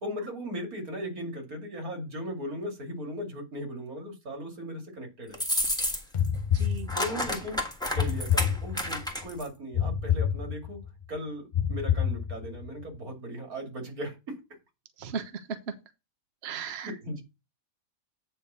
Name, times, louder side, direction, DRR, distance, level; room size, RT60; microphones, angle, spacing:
voice 1, 0.0-5.4 6.9-7.6 7.9-10.8 11.1-14.4 16.7-17.2, equal, 85° right, 3.0 m, -37 dB
sound 1, 5.3-6.3 6.5-9.5, left 1 dB, 5° left, 1.5 m, -30 dB
sound 2, 6.1-7.3 8.0-9.1 9.7-10.9 11.5-12.7, left 8 dB, 45° left, 0.7 m, -28 dB
voice 2, 6.5-6.9 15.0-15.3 16.4-16.9, right 6 dB, 50° right, 1.0 m, -36 dB
9.1 x 3.5 x 6.8 m
omnidirectional pair, 1.5 m